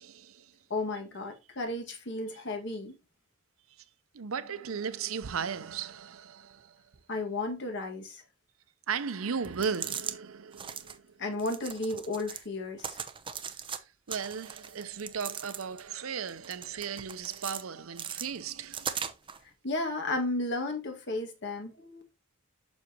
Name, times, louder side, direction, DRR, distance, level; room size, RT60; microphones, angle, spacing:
voice 1, 0.0-0.5 4.1-6.8 8.9-11.2 13.5-13.7 14.1-19.0, right 6 dB, 85° right, 0.7 m, -36 dB
voice 2, 0.7-3.0 7.1-8.2 11.2-13.0 19.6-22.0, left 2 dB, 60° left, 1.9 m, -33 dB
sound 1, 9.4-10.2 10.5-11.0 11.4-12.5 12.8-13.8 14.1-15.9 16.3-17.6 18.0-19.4, right 7 dB, 25° right, 0.6 m, -39 dB
7.3 x 6.3 x 2.9 m
head